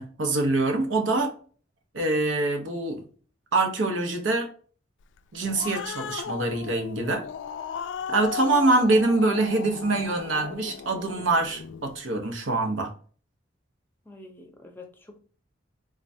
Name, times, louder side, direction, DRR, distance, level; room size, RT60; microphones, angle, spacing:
voice 1, 0.0-1.3 1.9-3.0 3.5-4.5 5.3-7.3 8.1-12.9, right 2 dB, 90° right, 4 dB, 0.8 m, -24 dB
Growling, 5.2-12.0, left 7 dB, 75° left, 0.3 m, -36 dB
voice 2, 14.1-15.2, left 2 dB, 10° left, 3 dB, 0.6 m, -47 dB
3.6 x 3.2 x 2.7 m, 0.41 s
head